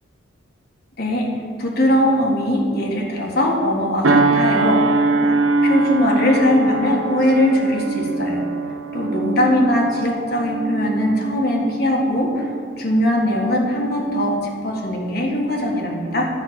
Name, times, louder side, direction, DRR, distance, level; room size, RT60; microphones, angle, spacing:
voice 1, 1.0-1.3 1.6-5.4 5.6-8.4 8.9-12.5 12.8-16.3, left 1 dB, 50° left, -1 dB, 1.7 m, -20 dB
sound 1, 4.0-12.9 13.4-13.6, right 3 dB, 85° right, 0.9 m, -22 dB
10.5 x 5.9 x 7.4 m, 2.1 s
head